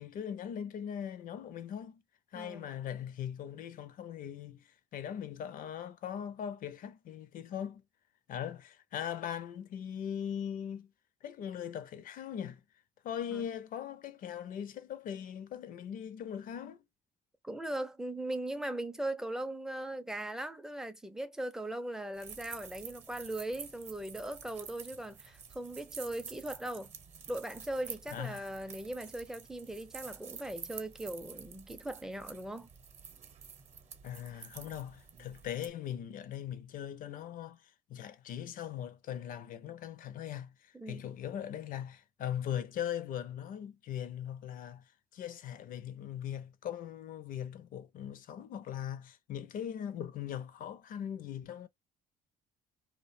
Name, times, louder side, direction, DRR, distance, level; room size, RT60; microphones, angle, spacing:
voice 1, 0.0-2.0 2.3-7.8 8.3-10.9 11.2-12.6 13.0-16.8 28.1-28.6 34.0-37.6 37.9-44.8 45.1-51.7, left 9 dB, 55° left, 0.5 m, -40 dB
voice 2, 2.3-2.7 13.3-13.5 17.4-26.9 27.3-32.7 40.7-41.0, right 1 dB, 5° right, 0.4 m, -39 dB
sound 1, 22.1-35.7, right 6 dB, 40° right, 0.7 m, -49 dB
2.5 x 2.1 x 2.5 m
cardioid pair, 110°, 17 cm